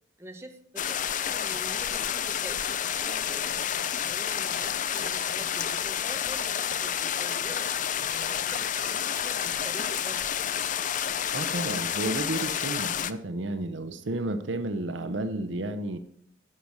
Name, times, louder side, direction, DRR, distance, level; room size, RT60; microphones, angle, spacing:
voice 1, 0.2-3.6 4.1-7.7 8.1-10.2, right 1 dB, 15° right, 4 dB, 1.2 m, -45 dB
sound 1, 0.8-13.1, left 9 dB, 45° left, 0.5 m, -29 dB
sound 2, 6.1-6.8 7.3-8.2 8.7-9.2 9.4-10.6, left 2 dB, 80° left, 4.9 m, -52 dB
voice 2, 11.3-16.0, right 2 dB, 75° right, 10 dB, 0.8 m, -32 dB
11.0 x 6.1 x 6.5 m, 0.68 s
head